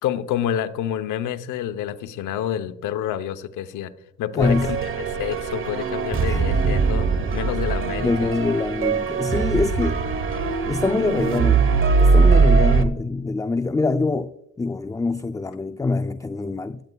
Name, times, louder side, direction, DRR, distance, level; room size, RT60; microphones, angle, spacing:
voice 1, 0.0-3.9 4.2-8.3, left 10 dB, 90° left, 0.9 m, -28 dB
voice 2, 4.3-4.7 6.2-6.9 8.0-10.0 10.7-14.3 14.6-16.8, left 3 dB, 10° left, 0.4 m, -24 dB
sound 1, 4.4-12.8, right 4 dB, 45° right, 1.2 m, -21 dB
16.0 x 11.0 x 2.3 m
cardioid pair, 90°, 30 cm